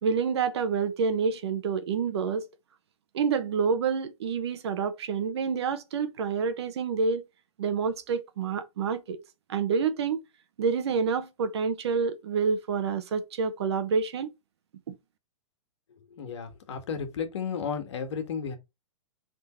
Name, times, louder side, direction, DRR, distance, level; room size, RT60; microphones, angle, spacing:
voice 1, 0.0-2.5 3.1-7.2 7.6-9.2 9.5-10.2 10.6-14.3 14.9-15.0, right 5 dB, 55° right, 1.0 m, -28 dB
voice 2, 16.1-18.6, left 6 dB, 60° left, 1.6 m, -33 dB
6.2 x 3.8 x 4.4 m
hypercardioid pair, 170°, 17 cm